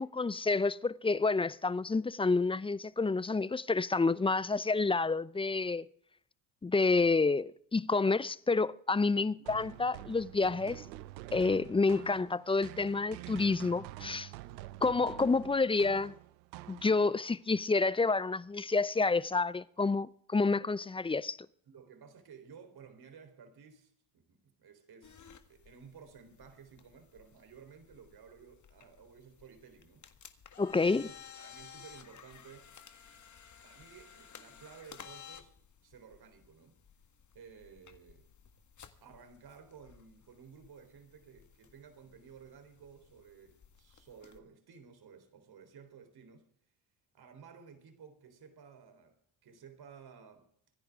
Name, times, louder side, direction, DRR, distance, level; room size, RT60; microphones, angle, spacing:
voice 1, 0.0-5.8 6.6-10.8 11.3-14.3 14.8-16.1 16.7-21.4 30.6-31.1, left 3 dB, 10° left, 0.5 m, -29 dB
sound 1, 9.5-17.3, right 17 dB, 90° right, 0.8 m, -47 dB
voice 2, 21.7-30.1 30.7-32.7 33.6-35.5 35.8-36.8 37.3-38.3 39.0-46.5 47.1-50.5, right 6 dB, 50° right, 3.8 m, -55 dB
sound 2, 25.0-44.4, left 8 dB, 35° left, 1.8 m, -56 dB
26.0 x 10.5 x 3.6 m
supercardioid pair, 70°, 49 cm